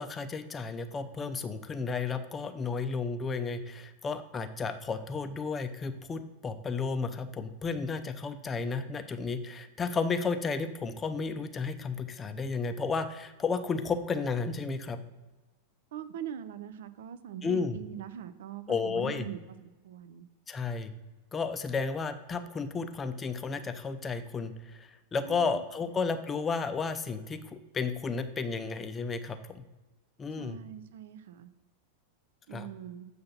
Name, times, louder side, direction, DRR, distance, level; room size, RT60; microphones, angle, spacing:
voice 1, 0.0-15.0 17.4-17.8 18.7-19.3 20.5-20.9 21.3-29.6 30.2-30.6 32.5-32.7, left 4 dB, 20° left, 9 dB, 0.5 m, -33 dB
voice 2, 15.9-20.3 25.2-25.6 30.4-31.5 32.5-33.1, right 9 dB, 60° right, 13 dB, 0.4 m, -42 dB
7.4 x 2.8 x 5.8 m, 1.1 s
figure-of-eight pair, 90°, 0 cm